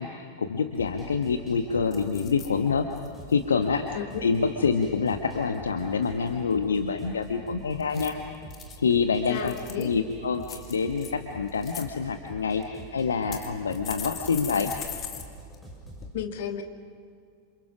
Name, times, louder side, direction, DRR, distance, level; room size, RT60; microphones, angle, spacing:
voice 1, 0.0-2.9 3.3-3.9 4.2-8.2 8.8-14.7, left 5 dB, 70° left, 6 dB, 1.3 m, -26 dB
sound 1, 0.7-16.1, right 2 dB, 5° left, 6.7 m, -46 dB
sound 2, 1.1-1.5 1.9-2.5 3.0-3.3 7.8-8.8 9.3-9.9 10.4-11.1 11.5-11.9 12.6-12.7 13.3-15.2 15.5-15.6 16.0-16.1, left 8 dB, 30° left, 2.8 m, -40 dB
voice 2, 9.3-9.9 16.1-16.6, left 9 dB, 55° left, 6 dB, 2.3 m, -33 dB
28.0 x 27.5 x 6.1 m, 2.2 s
figure-of-eight pair, 90°, 0 cm